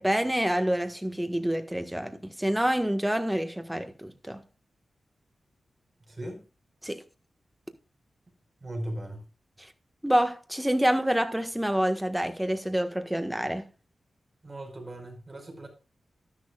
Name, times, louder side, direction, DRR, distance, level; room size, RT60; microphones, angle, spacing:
voice 1, 0.0-4.4 6.8-7.0 9.6-9.7 10.0-13.6, equal, 5° right, 1.5 m, -27 dB
voice 2, 8.6-9.2 14.4-15.7, right 1 dB, 30° right, 5.0 m, -37 dB
12.0 x 11.0 x 2.4 m
wide cardioid pair, 100°, 0 cm